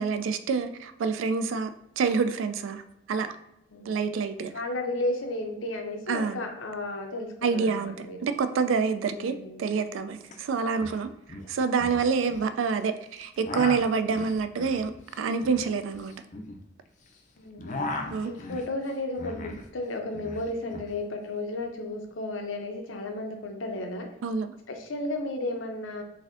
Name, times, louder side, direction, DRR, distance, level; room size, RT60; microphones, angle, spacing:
voice 1, 0.0-1.7 2.0-2.8 3.1-3.3 3.9-4.5 6.1-6.4 7.4-11.1 11.5-14.9 15.2-16.1 18.1-18.3 24.2-24.5, right 5 dB, 85° right, 11 dB, 0.3 m, -27 dB
voice 2, 4.5-8.3 9.1-9.6 17.4-17.9 18.3-24.1 24.7-26.0, left 2 dB, 85° left, 3 dB, 0.6 m, -33 dB
sound 1, 10.3-10.4 10.6-11.0 11.3-12.5 13.2-17.1 17.4-19.7 19.9-20.9, left 2 dB, 40° left, 0.4 m, -37 dB
4.0 x 2.6 x 2.5 m, 0.85 s
head